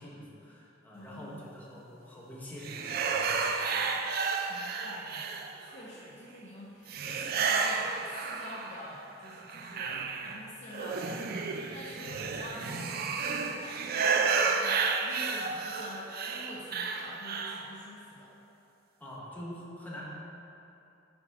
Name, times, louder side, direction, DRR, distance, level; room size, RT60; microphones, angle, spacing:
voice 1, 0.0-4.0 19.0-20.0, left 1 dB, 10° left, -6 dB, 1.1 m, -45 dB
voice 2, 0.9-1.5 4.5-18.3, left 1 dB, 40° left, -5 dB, 0.7 m, -47 dB
sound 1, 2.6-5.8 6.9-8.9 9.3-17.7, right 5 dB, 50° right, 0.4 m, -32 dB
5.8 x 4.1 x 5.2 m, 2.8 s
head